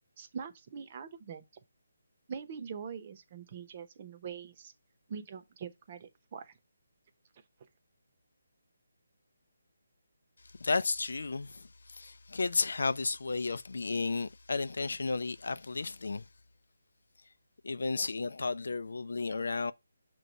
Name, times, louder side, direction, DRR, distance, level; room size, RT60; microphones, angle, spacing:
voice 1, 0.2-1.4 2.3-4.7 5.1-6.5, right 6 dB, 35° right, 0.9 m, -43 dB
voice 2, 10.6-16.3 17.6-19.7, left 3 dB, 70° left, 0.5 m, -33 dB
6.7 x 3.1 x 5.2 m
figure-of-eight pair, 160°, 0 cm